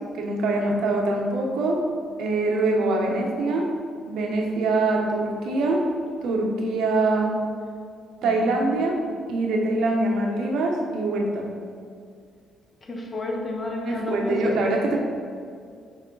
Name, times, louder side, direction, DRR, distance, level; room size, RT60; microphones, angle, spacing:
voice 1, 0.1-1.8 2.2-3.7 4.1-5.9 6.2-7.4 8.2-9.0 9.3-11.5 13.8-15.0, right 2 dB, 80° right, 1 dB, 1.1 m, -24 dB
voice 2, 2.8-3.2 8.2-8.7 12.8-14.5, left 1 dB, 35° left, 0 dB, 1.2 m, -31 dB
7.1 x 5.0 x 4.0 m, 2.2 s
cardioid pair, 90°, 0 cm